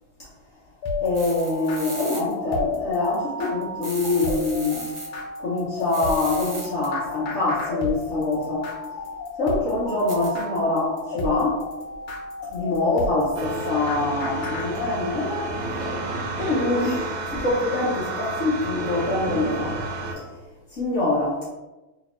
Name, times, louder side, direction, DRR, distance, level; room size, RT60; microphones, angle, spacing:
sound 1, 0.8-14.7, left 3 dB, 75° left, 1.6 m, -32 dB
voice 1, 1.0-4.9 5.4-8.7 9.4-11.6 12.5-15.4 16.4-19.7 20.2-20.3 20.7-21.4, left 2 dB, 60° left, -7 dB, 0.7 m, -25 dB
sound 2, 1.1-2.2 3.8-5.1 5.8-6.9 10.1-10.3, right 3 dB, 55° right, 1.4 m, -37 dB
sound 3, 13.4-20.1, right 2 dB, 75° right, 1.3 m, -31 dB
3.4 x 2.9 x 3.1 m, 1.1 s
omnidirectional pair, 2.4 m